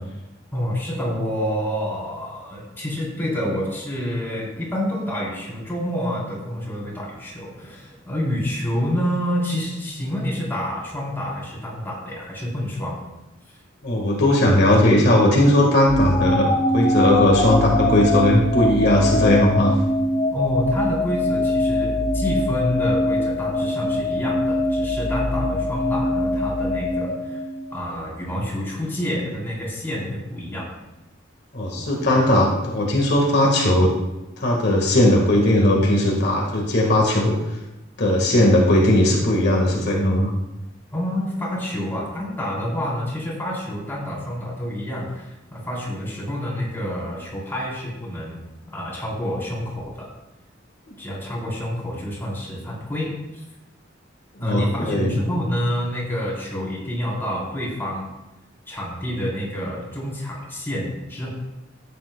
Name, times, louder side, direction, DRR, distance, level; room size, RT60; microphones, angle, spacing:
voice 1, 0.5-13.0 13.5-13.6 20.3-27.4 27.7-30.7 31.7-32.2 40.9-48.4 48.7-50.1 51.0-53.4 54.4-58.1 58.7-61.3, equal, 10° left, -6 dB, 3.7 m, -28 dB
voice 2, 13.8-16.4 16.7-19.8 31.5-33.9 34.4-37.4 38.0-40.3 54.4-55.2, left 1 dB, 60° left, -2 dB, 1.6 m, -18 dB
sound 1, 15.9-28.0, left 1 dB, 40° left, 3.3 m, -23 dB
13.5 x 9.3 x 2.2 m, 1.0 s
head